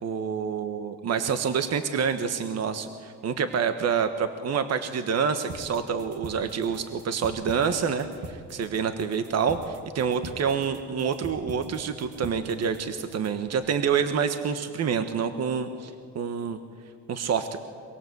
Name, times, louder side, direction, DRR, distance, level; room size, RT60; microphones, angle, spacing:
voice 1, 0.0-16.6 17.1-17.6, right 6 dB, 60° right, 8 dB, 1.3 m, -27 dB
sound 1, 5.5-13.5, right 4 dB, 80° right, 2.3 m, -43 dB
23.5 x 23.0 x 8.0 m, 2.2 s
cardioid pair, 90°, 30 cm